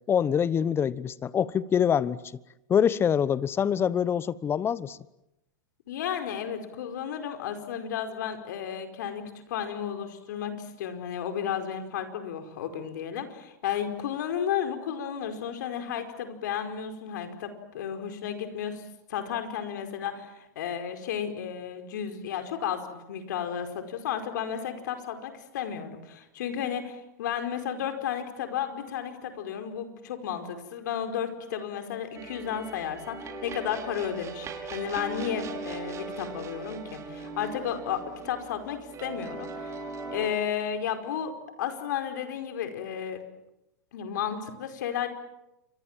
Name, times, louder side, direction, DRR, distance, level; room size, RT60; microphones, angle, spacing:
voice 1, 0.1-2.2 2.7-5.0, left 8 dB, 25° left, 1.0 m, -25 dB
voice 2, 5.9-9.2 9.5-18.8 19.1-39.8 40.1-41.3 41.6-43.2 43.9-45.1, left 8 dB, 70° left, 4.9 m, -33 dB
sound 1, 32.1-40.3, right 3 dB, 30° right, 5.7 m, -39 dB
29.0 x 25.0 x 7.6 m
hypercardioid pair, 115°, 10 cm